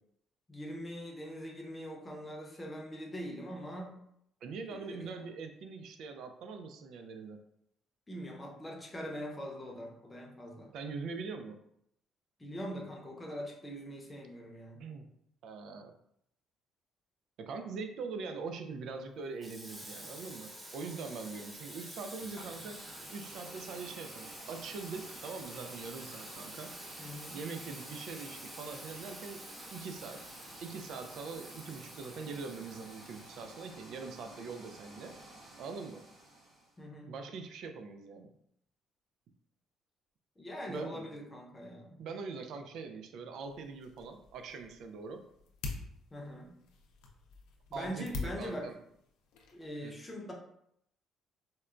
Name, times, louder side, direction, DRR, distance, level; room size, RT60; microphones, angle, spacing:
voice 1, 0.5-4.0 4.7-5.3 8.1-10.7 12.4-14.8 27.0-27.4 36.8-37.1 40.4-42.0 46.1-46.6 47.7-48.7 49.5-50.3, equal, 20° left, 0 dB, 0.7 m, -42 dB
voice 2, 4.4-7.4 10.6-11.6 14.8-15.1 15.4-15.9 17.4-22.8 23.1-26.7 27.3-29.4 29.7-30.2 30.6-35.1 35.6-36.0 37.1-38.3 40.7-41.2 42.0-45.2 47.7-48.8 49.8-49.9, right 4 dB, 70° right, 6 dB, 0.4 m, -43 dB
Water tap faucet / Sink (filling or washing), 19.4-34.2, right 1 dB, 15° right, 0.8 m, -49 dB
sound 1, 22.1-36.8, right 1 dB, 35° right, 1.4 m, -53 dB
sound 2, 43.4-49.8, left 3 dB, 90° left, 0.5 m, -46 dB
4.1 x 2.2 x 2.4 m, 0.73 s
cardioid pair, 105°, 0 cm